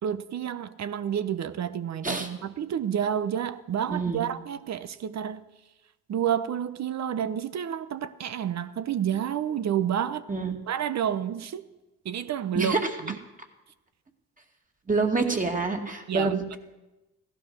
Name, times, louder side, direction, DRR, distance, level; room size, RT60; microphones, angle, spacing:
voice 1, 0.0-5.4 6.1-10.2 10.7-11.7 12.0-12.8 13.0-13.2 16.1-16.6, right 9 dB, 55° right, 0.9 m, -29 dB
voice 2, 3.9-4.2 10.3-10.6 12.5-12.9 14.9-16.4, right 4 dB, 25° right, 2.2 m, -26 dB
15.5 x 12.0 x 6.2 m
cardioid pair, 75°, 32 cm